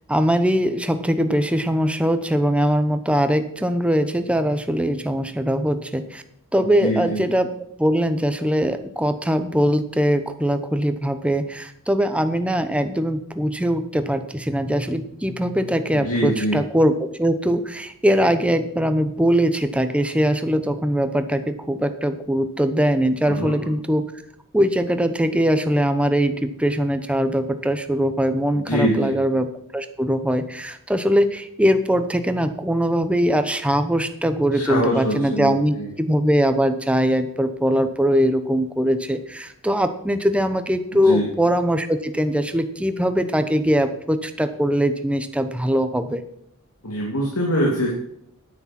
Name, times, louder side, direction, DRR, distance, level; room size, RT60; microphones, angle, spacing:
voice 1, 0.1-6.2 6.5-7.5 7.8-16.9 17.2-24.0 24.5-29.5 29.7-46.2, equal, 5° right, 9 dB, 0.8 m, -21 dB
voice 2, 6.6-7.2 16.0-16.6 23.3-23.7 28.5-29.2 34.5-35.9 40.9-41.3 46.8-47.9, equal, 80° left, -2 dB, 2.6 m, -24 dB
9.9 x 9.5 x 6.0 m, 0.73 s
head